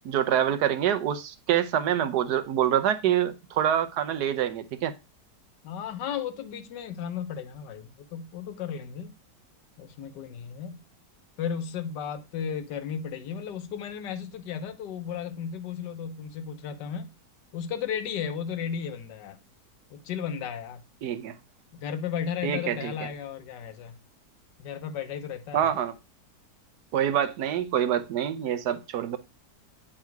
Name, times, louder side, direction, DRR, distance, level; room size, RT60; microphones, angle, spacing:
voice 1, 0.0-4.9 21.0-21.3 22.4-22.9 25.5-25.9 26.9-29.2, right 10 dB, 70° right, 1.2 m, -26 dB
voice 2, 5.6-9.1 9.8-10.8 11.4-17.1 17.5-19.4 19.9-20.9 21.7-24.0 24.6-25.7, left 7 dB, 80° left, 1.4 m, -34 dB
8.7 x 3.7 x 4.6 m
omnidirectional pair, 1.8 m